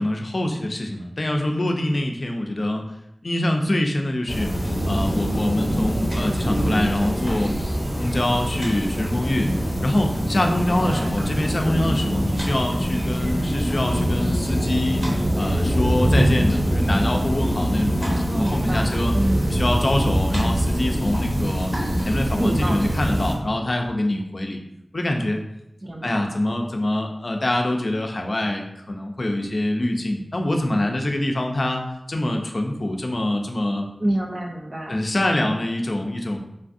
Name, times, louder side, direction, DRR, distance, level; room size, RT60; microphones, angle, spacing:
voice 1, 0.0-2.9 3.2-4.5 4.8-7.6 8.0-9.5 9.8-15.0 15.4-19.1 19.5-21.7 22.1-24.6 24.9-25.4 26.0-31.8 32.1-33.8 34.9-36.4, left 1 dB, 55° left, 3 dB, 0.4 m, -24 dB
sound 1, 4.3-23.3, equal, 25° right, 0.9 m, -23 dB
voice 2, 10.7-11.2 18.0-19.6 22.3-23.4 25.8-26.3 34.0-35.0, right 1 dB, 40° right, 2 dB, 0.3 m, -28 dB
3.3 x 2.4 x 2.5 m, 0.82 s
wide cardioid pair, 60°, 0 cm